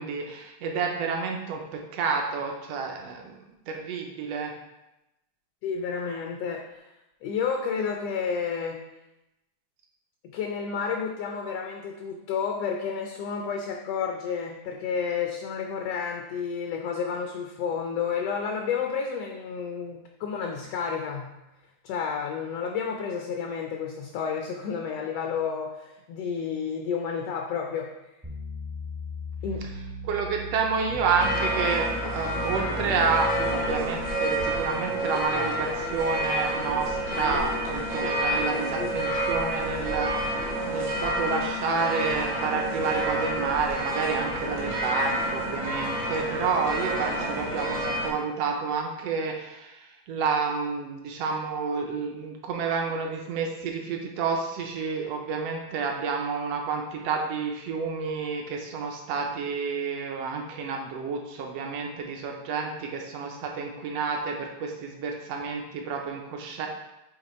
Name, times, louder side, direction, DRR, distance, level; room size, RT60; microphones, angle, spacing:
voice 1, 0.0-3.4 3.7-4.5 30.0-66.7, right 5 dB, 75° right, 2 dB, 1.5 m, -29 dB
voice 2, 5.6-6.9 7.2-8.8 10.3-21.3 21.8-27.9 29.4-29.6 38.0-38.1 38.8-38.9, left 6 dB, 80° left, 2 dB, 1.4 m, -31 dB
sound 1, 28.2-33.6, left 1 dB, 20° right, 0.4 m, -37 dB
sound 2, 31.2-48.1, right 1 dB, 50° right, 0.8 m, -29 dB
7.8 x 3.0 x 4.2 m, 0.94 s
omnidirectional pair, 3.3 m